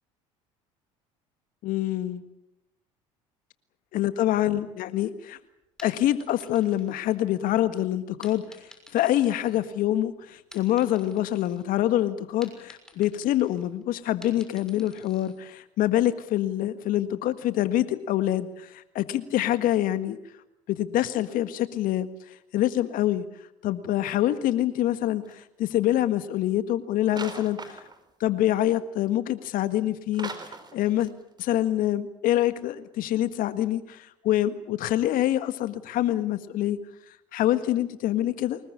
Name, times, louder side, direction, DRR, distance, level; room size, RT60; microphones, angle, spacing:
voice 1, 1.6-2.2 3.9-5.4 5.8-8.5 8.9-20.2 20.7-22.1 22.5-23.2 23.6-27.8 28.2-30.3 30.7-31.1 31.4-36.8 37.3-38.6, left 13 dB, 60° left, 12 dB, 1.7 m, -25 dB
sound 1, 5.6-7.6 8.2-10.0 10.4-11.7 12.0-15.4, left 1 dB, 5° left, 6.3 m, -52 dB
sound 2, 25.2-25.4 27.1-28.1 30.1-31.1 31.4-31.5, right 3 dB, 25° right, 4.3 m, -40 dB
24.5 x 21.0 x 8.6 m, 0.84 s
hypercardioid pair, 70°, 16 cm